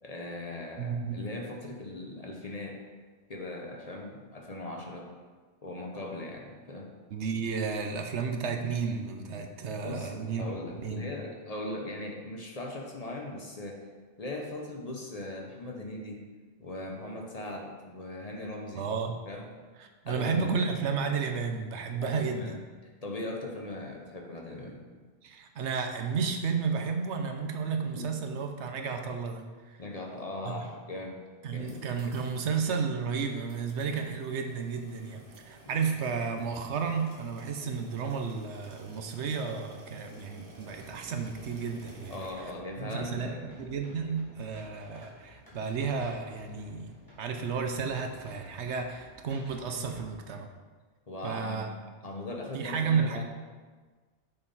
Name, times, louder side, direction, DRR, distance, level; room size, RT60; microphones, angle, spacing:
voice 1, 0.0-2.8 3.3-5.1 5.6-6.9 9.8-13.8 14.2-16.2 16.6-18.9 19.2-19.5 20.1-20.6 22.0-22.6 22.8-25.0 27.9-28.1 29.8-31.2 31.5-31.7 42.1-43.6 44.1-44.2 51.1-51.7 52.0-53.2, left 2 dB, 35° left, 0 dB, 0.9 m, -39 dB
voice 2, 0.8-1.2 7.1-10.4 10.8-11.1 18.7-19.2 19.8-22.6 25.2-29.8 30.5-30.6 31.4-42.2 42.8-46.9 47.2-50.5 51.2-51.7 52.5-53.2, right 5 dB, 80° right, 5 dB, 1.0 m, -32 dB
sound 1, 31.6-32.4 32.7-32.8 33.4-42.3, right 2 dB, 55° right, 1.4 m, -54 dB
sound 2, 40.5-50.0, equal, 20° left, 2.0 m, -54 dB
6.8 x 5.4 x 4.1 m, 1.4 s
omnidirectional pair, 1.2 m